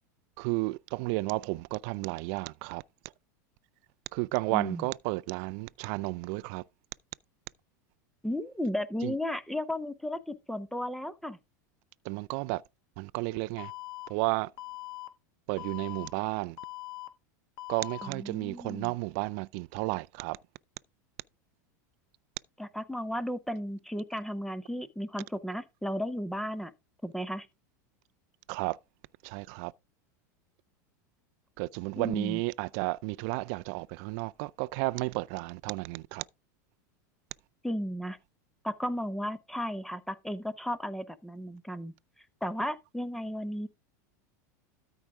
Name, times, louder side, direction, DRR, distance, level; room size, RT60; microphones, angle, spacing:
voice 1, 0.4-2.8 4.1-6.6 9.0-9.1 12.1-12.6 13.0-13.7 14.1-14.5 15.5-16.6 17.7-20.4 28.5-28.8 29.2-29.7 31.6-36.2, right 24 dB, 55° right, 0.4 m, -32 dB
voice 2, 4.5-4.9 8.2-11.4 18.0-18.9 22.6-26.7 27.0-27.5 32.0-32.4 37.6-38.2 38.6-43.7, equal, 5° left, 0.7 m, -34 dB
Alarm, 13.6-14.1 14.6-15.1 15.6-16.1 16.6-17.1 17.6-18.1, left 20 dB, 55° left, 1.3 m, -41 dB
13.0 x 4.8 x 3.5 m
supercardioid pair, 120°, 10 cm